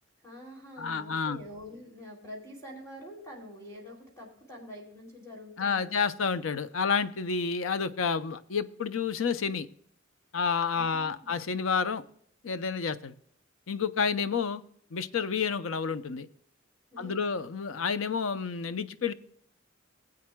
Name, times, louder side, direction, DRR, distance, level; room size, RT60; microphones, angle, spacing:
voice 1, 0.2-6.1 10.7-11.3 16.9-17.4, left 1 dB, 15° left, -3 dB, 2.9 m, -46 dB
voice 2, 0.8-1.4 5.6-9.7 10.3-12.0 12.4-13.1 13.7-14.6 14.9-16.3 17.0-19.1, left 5 dB, 90° left, 13 dB, 0.6 m, -30 dB
18.5 x 8.4 x 2.2 m, 0.64 s
head